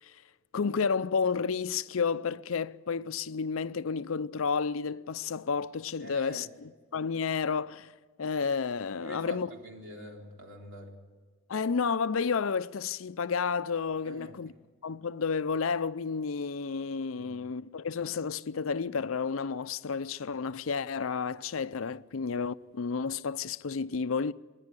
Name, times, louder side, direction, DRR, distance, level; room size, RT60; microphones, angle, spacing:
voice 1, 0.5-7.9 8.2-9.5 11.5-14.5 14.8-24.3, left 5 dB, 75° left, 0.5 m, -31 dB
voice 2, 6.0-6.5 9.0-10.9 14.0-14.4 17.1-17.4 21.9-22.0, equal, 60° right, 3.6 m, -45 dB
27.0 x 11.0 x 9.7 m
head